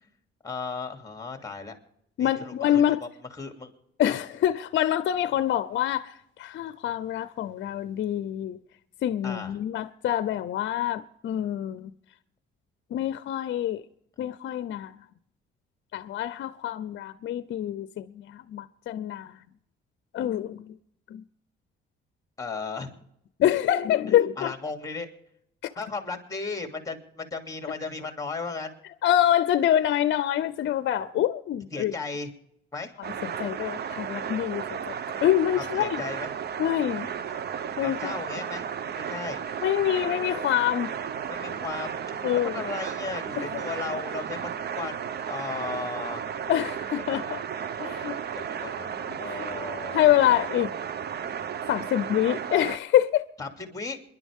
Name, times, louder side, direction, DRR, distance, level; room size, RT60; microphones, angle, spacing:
voice 1, 0.4-1.8 2.2-3.7 4.0-4.2 9.2-9.6 22.4-23.0 24.4-25.1 25.8-28.7 31.7-32.3 32.7-32.9 35.6-36.3 37.8-38.7 38.9-39.4 41.3-46.2 47.1-47.4 48.3-50.5 53.4-54.0, left 4 dB, 15° left, 2.7 m, -36 dB
voice 2, 2.2-3.0 4.0-6.1 6.4-8.6 9.0-11.9 12.9-13.8 14.2-14.9 15.9-19.3 20.1-20.7 21.1-21.2 23.4-24.5 29.0-31.9 33.2-34.9 35.2-36.0 36.6-37.1 37.8-38.1 39.6-40.9 42.2-42.6 43.4-43.5 46.5-47.4 47.8-48.2 49.1-49.5 49.9-50.7 51.7-53.3, left 11 dB, 65° left, 0.6 m, -26 dB
sound 1, 33.0-52.8, right 8 dB, 55° right, 0.8 m, -34 dB
27.0 x 11.0 x 3.6 m
cardioid pair, 90°, 20 cm